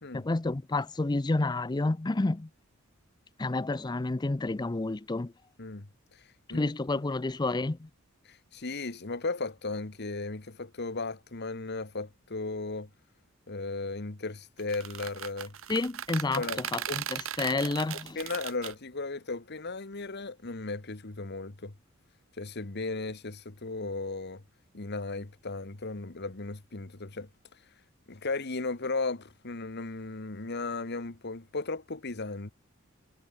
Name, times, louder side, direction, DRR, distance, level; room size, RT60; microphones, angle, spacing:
voice 1, 0.1-2.5 3.4-5.3 6.5-7.9 15.7-18.2, left 2 dB, 20° left, 0.5 m, -30 dB
voice 2, 5.6-6.2 6.5-6.7 8.2-12.9 13.5-15.5 16.3-16.6 16.9-17.0 18.1-21.7 22.4-24.4 24.7-27.3 28.1-32.5, left 3 dB, 55° left, 1.5 m, -36 dB
sound 1, 14.6-18.7, right 10 dB, 70° right, 1.2 m, -37 dB
head